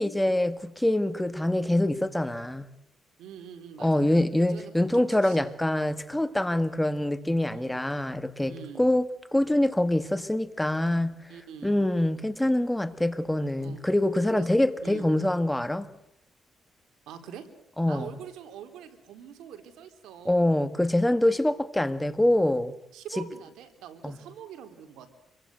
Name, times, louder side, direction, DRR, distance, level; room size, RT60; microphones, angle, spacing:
voice 1, 0.0-2.6 3.8-11.3 11.6-15.9 17.8-18.1 20.2-22.7 23.2-23.3 24.0-24.1, left 1 dB, 5° left, 1.7 m, -25 dB
voice 2, 3.2-5.5 7.5-7.8 8.5-8.8 11.3-11.7 13.6-13.8 14.3-14.5 14.8-15.1 17.1-17.5 17.9-20.6 22.9-25.1, right 9 dB, 85° right, 3.8 m, -44 dB
27.0 x 23.5 x 7.9 m
cardioid pair, 90°, 0 cm